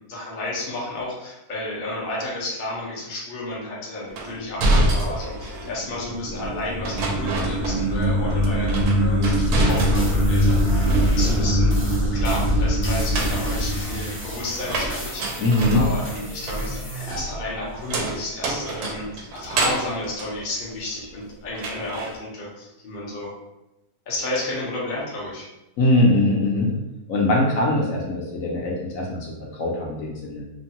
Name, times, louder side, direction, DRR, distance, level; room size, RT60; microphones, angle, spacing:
voice 1, 0.1-11.8 12.1-23.3 24.1-25.5, left 2 dB, 45° left, -4 dB, 0.7 m, -32 dB
sound 1, 4.2-5.8 6.8-8.1 8.4-10.3 10.6-11.5 12.9-21.2 21.6-22.2, right 1 dB, 90° right, 1.1 m, -27 dB
sound 2, 5.6-14.9, equal, 65° right, 0.6 m, -22 dB
sound 3, 9.3-17.2, equal, 20° left, 0.3 m, -35 dB
voice 2, 15.4-15.8 25.8-26.7 27.1-29.3 29.5-30.4, left 1 dB, 70° left, -3 dB, 1.0 m, -21 dB
2.9 x 2.2 x 2.7 m, 0.94 s
omnidirectional pair, 1.6 m